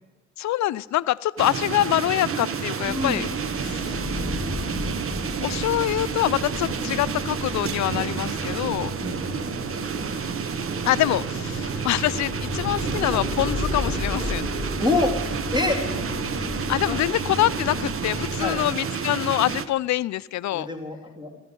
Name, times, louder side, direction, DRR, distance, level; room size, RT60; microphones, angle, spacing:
voice 1, 0.4-3.3 3.6-4.0 5.4-8.9 10.8-14.5 16.7-20.7, left 14 dB, 65° left, 0.5 m, -25 dB
sound 1, 1.4-19.7, right 6 dB, 45° right, 1.0 m, -30 dB
sound 2, 2.8-18.6, left 2 dB, ahead, 4.7 m, -34 dB
voice 2, 2.9-3.3 9.0-9.6 13.1-13.2 14.8-15.2 15.5-15.8 16.8-17.0 18.4-18.6 20.5-21.4, left 2 dB, 15° right, 3.3 m, -26 dB
16.5 x 13.5 x 5.4 m
cardioid pair, 90°, 30 cm